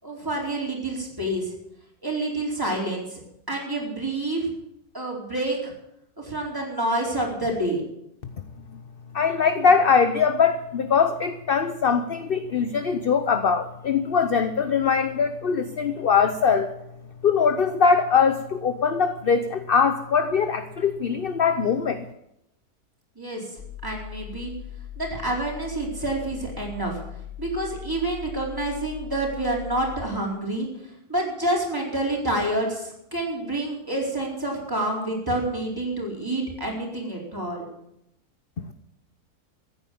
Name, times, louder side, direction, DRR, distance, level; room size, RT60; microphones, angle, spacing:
voice 1, 0.0-1.5 2.0-3.2 3.5-4.5 4.9-5.7 6.2-7.8 23.2-23.5 23.8-24.5 25.0-27.0 27.4-30.7 31.1-37.7, right 1 dB, 15° right, -2 dB, 4.3 m, -28 dB
voice 2, 9.1-16.7 17.2-22.0, left 6 dB, 45° left, 10 dB, 0.9 m, -22 dB
sound 1, 23.6-30.1, left 11 dB, 85° left, 5.9 m, -39 dB
15.0 x 9.7 x 8.6 m, 0.81 s
omnidirectional pair, 1.6 m